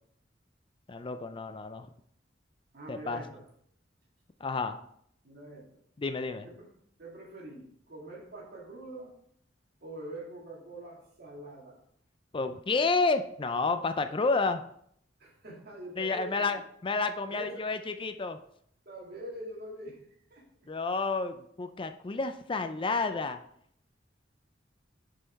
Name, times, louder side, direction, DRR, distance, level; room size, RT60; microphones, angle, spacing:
voice 1, 0.9-1.9 2.9-3.2 4.4-4.8 6.0-6.5 12.3-14.6 16.0-18.4 20.7-23.4, left 3 dB, 30° left, 9 dB, 0.4 m, -30 dB
voice 2, 2.7-3.4 5.2-5.8 6.4-6.7 7.0-9.1 9.8-11.8 15.2-16.6 17.3-17.7 18.9-20.0 20.3-20.7, right 1 dB, 55° right, -3 dB, 2.5 m, -44 dB
7.0 x 5.6 x 4.6 m, 0.67 s
head